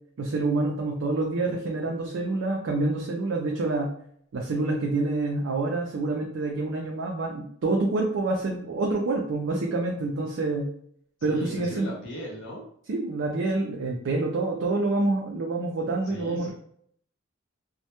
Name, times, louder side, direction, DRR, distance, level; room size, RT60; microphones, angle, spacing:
voice 1, 0.2-3.9 4.3-10.7 11.2-11.9 12.9-16.5, right 2 dB, 70° right, -1 dB, 0.4 m, -27 dB
voice 2, 11.3-12.6 16.0-16.5, equal, 70° left, -4 dB, 0.6 m, -38 dB
2.1 x 2.0 x 2.8 m, 0.64 s
head